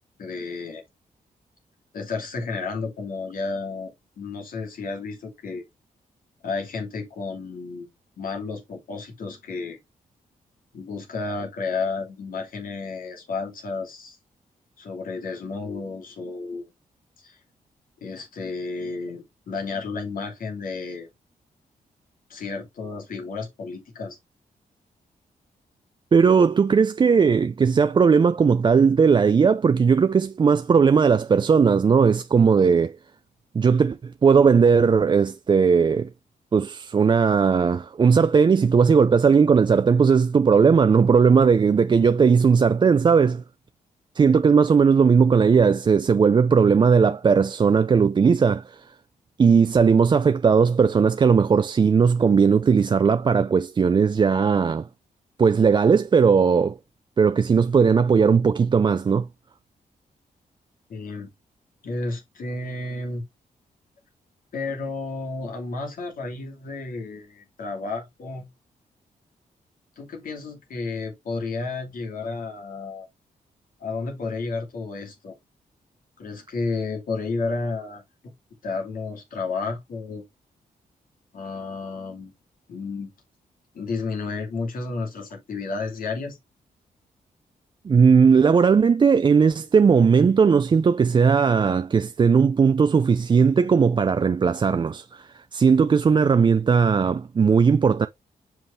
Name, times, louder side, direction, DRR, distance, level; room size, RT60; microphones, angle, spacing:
voice 1, 0.2-0.8 1.9-5.6 6.4-9.8 10.7-14.2 14.8-16.7 17.2-17.4 18.0-21.1 22.3-24.2 60.9-61.3 61.8-63.2 64.5-68.5 70.0-73.1 73.8-75.3 76.2-78.3 78.6-80.2 81.3-82.3 82.7-83.1 83.7-86.4, left 4 dB, 70° left, 2.6 m, -32 dB
voice 2, 26.1-33.0 33.5-36.1 36.5-43.4 44.2-48.8 49.4-54.8 55.4-56.8 57.2-59.3 87.8-98.1, right 6 dB, 30° right, 0.4 m, -18 dB
5.7 x 5.6 x 3.1 m
cardioid pair, 110°, 15 cm